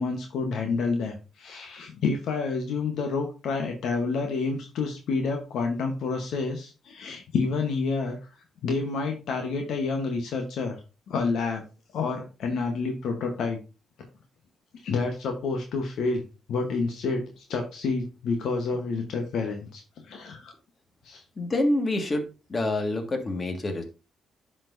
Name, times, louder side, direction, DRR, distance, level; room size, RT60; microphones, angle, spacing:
voice 1, 0.0-8.2 8.6-10.8 11.1-11.6 11.9-13.6 14.8-16.2 16.5-19.8 20.1-20.5 21.0-21.2, left 4 dB, 75° left, 3 dB, 1.0 m, -29 dB
voice 2, 21.4-22.2 22.5-23.8, left 1 dB, 40° left, 4 dB, 1.7 m, -26 dB
10.5 x 4.3 x 2.6 m, 0.31 s
supercardioid pair, 55°, 0 cm